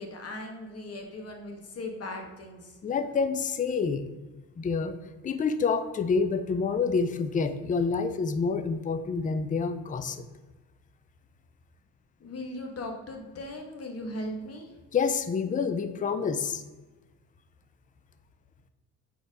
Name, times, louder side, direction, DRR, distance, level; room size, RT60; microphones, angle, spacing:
voice 1, 0.0-2.8 12.2-14.8, left 1 dB, 55° left, 3 dB, 1.3 m, -38 dB
voice 2, 2.8-4.1 4.6-5.0 5.2-10.2 14.9-16.6, left 5 dB, 25° left, 10 dB, 0.5 m, -28 dB
4.5 x 4.2 x 5.2 m, 1.2 s
cardioid pair, 90°, 30 cm